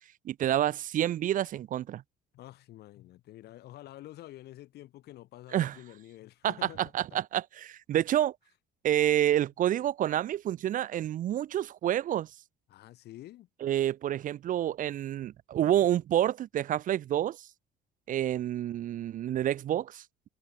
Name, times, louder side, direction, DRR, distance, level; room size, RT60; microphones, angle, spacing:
voice 1, 0.3-2.0 5.5-5.8 6.9-8.4 8.8-12.3 13.6-17.5 18.1-20.0, right 12 dB, 50° right, 0.6 m, -28 dB
voice 2, 2.3-7.2 12.7-13.5, left 15 dB, 75° left, 7.1 m, -48 dB
cardioid pair, 110°, 17 cm